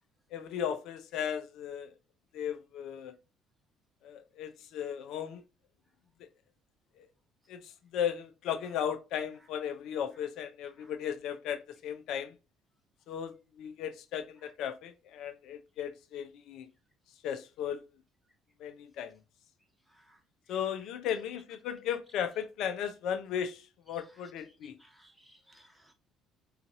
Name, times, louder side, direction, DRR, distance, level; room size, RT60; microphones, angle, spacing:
voice 1, 0.3-1.9 2.3-3.2 4.0-5.4 7.5-12.4 13.1-16.7 17.2-17.8 18.6-19.2 20.5-24.8, left 9 dB, 65° left, 0.5 m, -36 dB
voice 2, 24.8-25.9, equal, 5° right, 1.2 m, -62 dB
3.9 x 2.4 x 2.4 m
hypercardioid pair, 55°, 0 cm